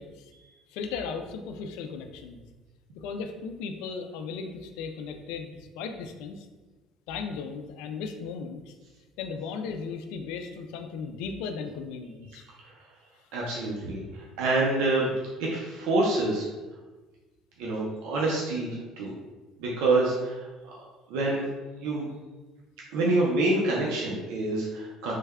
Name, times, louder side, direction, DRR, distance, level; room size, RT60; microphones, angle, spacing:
voice 1, 0.0-0.3 0.7-2.4 2.9-6.5 7.1-8.7 9.2-12.4, left 5 dB, 85° left, 6 dB, 0.3 m, -36 dB
voice 2, 13.3-16.5 17.6-19.1 19.6-20.5 21.1-21.4 21.8-22.1 22.9-25.1, right 2 dB, 90° right, -3 dB, 0.6 m, -27 dB
3.2 x 2.2 x 3.5 m, 1.2 s
cardioid pair, 170°, 0 cm